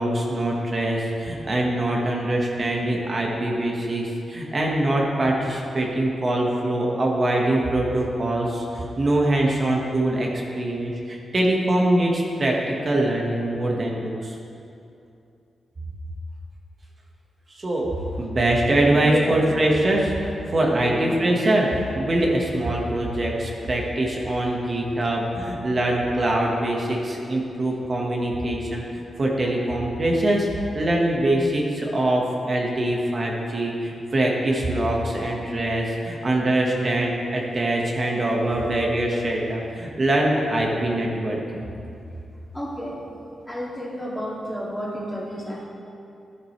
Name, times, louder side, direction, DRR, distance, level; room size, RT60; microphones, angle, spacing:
voice 1, 0.0-10.3 10.5-14.3 17.5-17.9 18.2-41.6, right 1 dB, 40° right, -1 dB, 1.5 m, -23 dB
voice 2, 18.9-19.4 20.7-21.0 42.5-43.0 43.5-45.6, equal, 10° left, -5 dB, 2.5 m, -31 dB
12.0 x 11.0 x 3.3 m, 2.6 s
cardioid pair, 85°, 0 cm